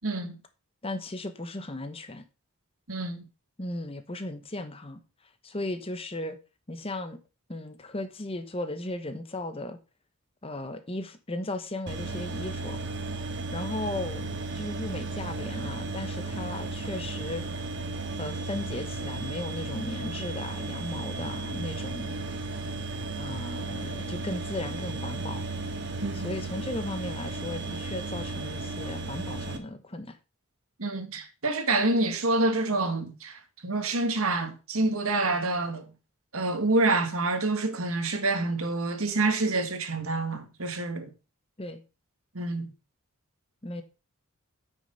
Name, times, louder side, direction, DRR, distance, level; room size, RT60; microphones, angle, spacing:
voice 1, 0.0-0.4 2.9-3.2 26.0-26.3 30.8-35.9 36.3-41.1 42.3-42.7, right 2 dB, 70° right, 1.8 m, -27 dB
voice 2, 0.8-2.2 3.6-5.0 5.4-6.4 6.7-7.2 7.5-9.8 10.4-12.8 13.5-17.4 18.2-22.2 23.2-25.5 26.1-30.2 41.6-41.8 43.6-43.8, left 1 dB, 25° left, 0.9 m, -36 dB
sound 1, 11.9-29.6, right 3 dB, 55° right, 1.6 m, -34 dB
9.4 x 6.4 x 5.6 m
head